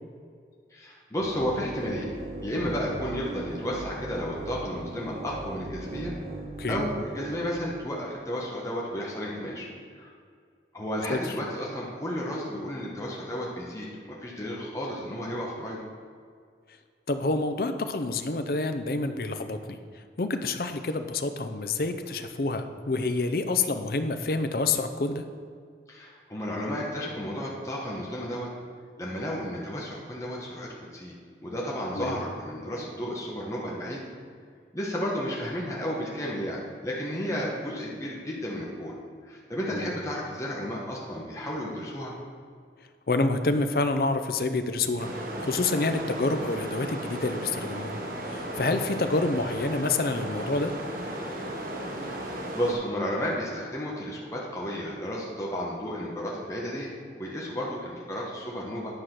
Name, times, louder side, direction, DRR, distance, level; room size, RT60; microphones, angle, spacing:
voice 1, 0.7-2.1 2.4-6.1 6.7-9.7 9.9-10.1 10.7-15.8 25.9-28.5 29.0-31.1 31.4-34.0 34.7-38.9 39.2-42.1 52.3-58.9, equal, 15° left, -4 dB, 1.1 m, -32 dB
sound 1, 1.2-7.5, right 2 dB, 35° right, 0.8 m, -38 dB
voice 2, 17.1-19.8 20.2-25.2 31.9-32.2 39.7-39.9 43.1-48.0 48.3-50.7, left 3 dB, 55° left, 8 dB, 0.6 m, -28 dB
sound 2, 45.0-52.7, right 1 dB, 55° right, 1.1 m, -35 dB
9.8 x 4.9 x 5.9 m, 2.1 s
head